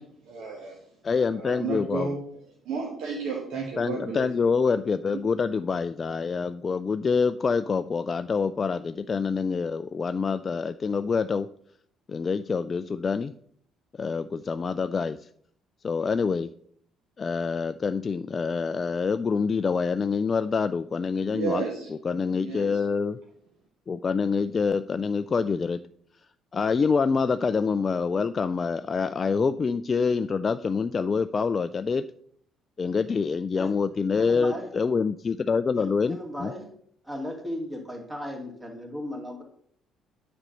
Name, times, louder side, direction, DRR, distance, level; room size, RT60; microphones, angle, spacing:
voice 1, 0.3-0.7 1.3-2.2 2.7-4.3 21.3-21.9 22.4-22.7 23.0-23.1, right 5 dB, 65° right, -2 dB, 1.6 m, -32 dB
voice 2, 1.0-2.1 3.8-11.5 12.1-13.3 14.0-15.2 15.8-16.5 17.2-21.6 21.9-23.2 23.9-25.8 26.5-32.0 32.8-36.5, left 5 dB, 35° left, 12 dB, 0.3 m, -26 dB
voice 3, 34.1-34.7 35.7-36.7 37.0-39.4, equal, 15° right, 2 dB, 2.4 m, -36 dB
8.8 x 4.3 x 5.3 m, 0.64 s
hypercardioid pair, 50°, 0 cm